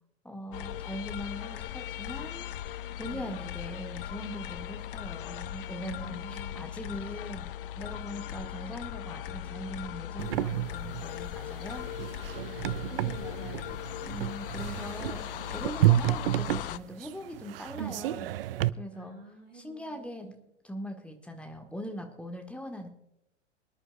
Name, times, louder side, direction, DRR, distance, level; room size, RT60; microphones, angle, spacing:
voice 1, 0.2-2.5 3.0-7.5 7.8-11.9 14.1-18.3 18.7-19.1 19.5-20.3 20.6-22.9, equal, 5° left, 3 dB, 1.5 m, -41 dB
sound 1, 0.5-16.8, left 12 dB, 50° left, 0.4 m, -39 dB
voice 2, 3.0-3.5 5.8-6.7 12.9-13.8 18.9-20.4, right 1 dB, 75° right, -1 dB, 2.6 m, -47 dB
sound 2, 10.2-18.7, right 14 dB, 50° right, 0.5 m, -30 dB
25.0 x 10.5 x 2.3 m, 0.80 s
figure-of-eight pair, 95°, 36 cm